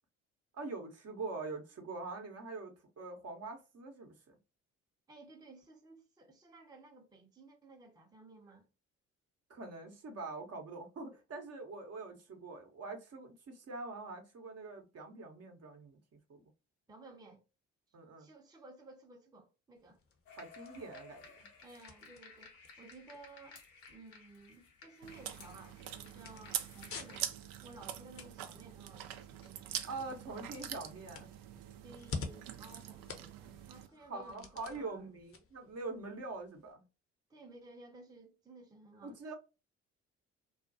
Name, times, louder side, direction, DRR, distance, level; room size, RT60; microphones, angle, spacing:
voice 1, 0.5-4.3 9.5-16.0 16.3-16.4 17.9-18.3 20.4-21.3 29.9-31.3 34.0-36.8 39.0-39.3, right 3 dB, 40° right, 0.9 m, -44 dB
voice 2, 5.1-8.7 16.9-17.4 18.2-20.0 21.6-23.6 23.9-29.8 31.8-35.1 37.3-39.2, right 2 dB, 10° right, 0.7 m, -56 dB
sound 1, 19.8-36.7, left 4 dB, 35° left, 0.7 m, -51 dB
sound 2, 20.3-27.2, left 4 dB, 70° left, 0.9 m, -57 dB
Chewing mastication, 25.0-33.9, right 10 dB, 65° right, 0.5 m, -44 dB
2.4 x 2.2 x 2.5 m
hypercardioid pair, 50°, 37 cm